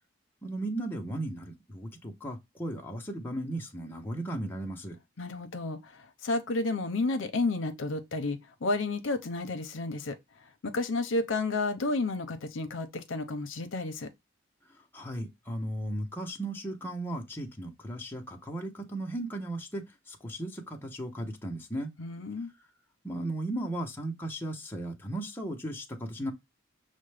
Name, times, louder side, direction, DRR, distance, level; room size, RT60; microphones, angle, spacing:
voice 1, 0.4-5.0 14.9-21.9 23.0-26.3, right 1 dB, 10° left, 0.7 m, -36 dB
voice 2, 5.2-10.2 10.6-14.1 22.0-22.5, left 2 dB, 70° left, 0.7 m, -31 dB
6.4 x 2.1 x 3.2 m
head